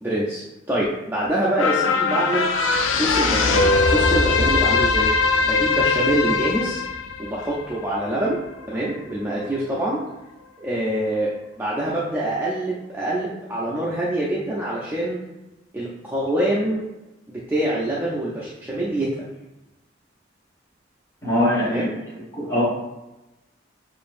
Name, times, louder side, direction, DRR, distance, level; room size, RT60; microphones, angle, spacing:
voice 1, 0.0-2.5 2.9-5.1 5.4-6.8 7.2-8.4 8.7-10.0 10.6-15.2 15.7-16.8 17.3-19.1 21.6-21.9, right 1 dB, 10° right, -7 dB, 0.4 m, -25 dB
sound 1, 1.6-8.2 8.6-8.7, left 4 dB, 80° left, 0.4 m, -21 dB
voice 2, 21.2-21.9 22.3-22.7, left 1 dB, 15° left, -4 dB, 1.3 m, -21 dB
7.0 x 2.5 x 2.5 m, 0.99 s
head